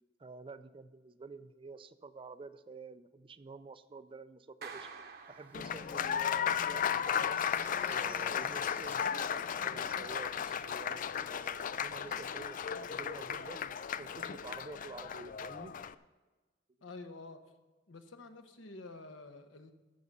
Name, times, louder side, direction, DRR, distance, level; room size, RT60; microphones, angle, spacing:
voice 1, 0.2-4.9 5.3-7.4 7.9-12.6 12.9-13.6 14.0-15.7, right 3 dB, 30° right, 13 dB, 0.4 m, -49 dB
Clapping, 4.6-6.3, right 5 dB, 55° right, 1.0 m, -49 dB
Applause, 5.5-15.9, left 8 dB, 45° left, 0.4 m, -35 dB
sound 1, 5.7-12.4 12.7-12.9 13.2-13.5, right 1 dB, 10° right, 0.9 m, -56 dB
voice 2, 16.8-17.4 17.9-19.7, left 3 dB, 75° left, 7 dB, 1.1 m, -49 dB
15.5 x 6.1 x 5.4 m, 1.2 s
head